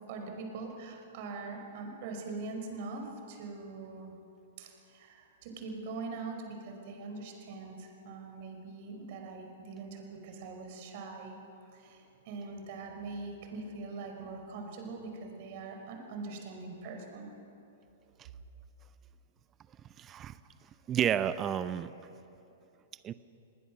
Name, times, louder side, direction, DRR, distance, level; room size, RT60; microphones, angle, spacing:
voice 1, 0.1-4.1 4.6-11.4 11.7-17.3, right 3 dB, 50° right, 3 dB, 5.2 m, -42 dB
voice 2, 20.0-20.4 20.9-21.9 23.0-23.1, right 9 dB, 25° right, 14 dB, 0.8 m, -31 dB
28.0 x 20.0 x 6.3 m, 2.8 s
figure-of-eight pair, 110°, 0 cm